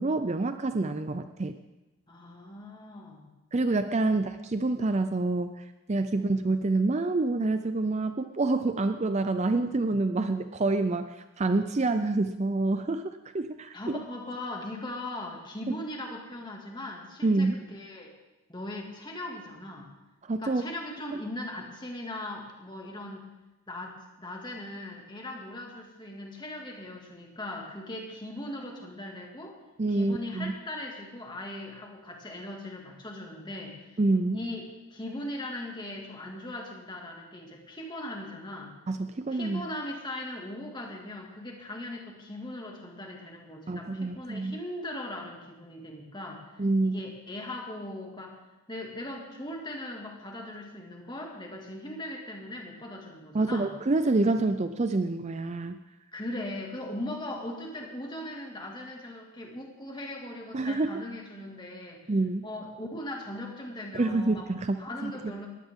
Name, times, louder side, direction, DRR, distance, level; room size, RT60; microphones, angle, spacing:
voice 1, 0.0-1.6 3.5-14.0 15.7-15.8 17.2-17.6 20.2-20.6 29.8-30.5 34.0-34.4 38.9-39.6 43.7-44.6 46.6-47.0 53.3-55.8 60.5-61.0 62.1-62.4 63.9-65.1, right 2 dB, 30° right, 9 dB, 0.5 m, -27 dB
voice 2, 2.1-3.3 4.0-4.3 6.2-6.3 13.7-18.1 18.5-19.9 20.4-23.3 23.7-29.6 29.9-34.0 34.3-38.7 39.3-48.4 48.7-53.7 56.1-62.1 62.4-64.5 64.8-65.5, left 1 dB, 20° left, 1 dB, 2.2 m, -39 dB
21.0 x 16.0 x 3.7 m, 1.0 s
head